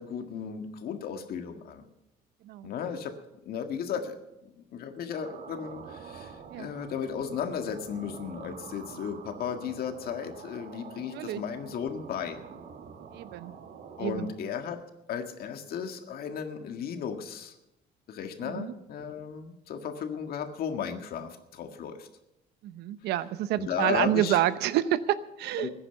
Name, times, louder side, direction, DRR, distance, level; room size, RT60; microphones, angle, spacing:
voice 1, 0.0-1.8 2.6-3.1 3.5-12.4 14.0-14.8 15.1-17.6 18.1-22.1 23.5-24.4 25.6-25.7, left 7 dB, 65° left, 6 dB, 1.8 m, -35 dB
sound 1, 5.1-14.4, right 6 dB, 60° right, 1.8 m, -46 dB
voice 2, 13.1-13.5 14.0-14.3 18.4-18.7 22.6-25.7, right 13 dB, 80° right, 14 dB, 0.8 m, -28 dB
15.5 x 10.0 x 7.0 m, 0.91 s
cardioid pair, 110°, 17 cm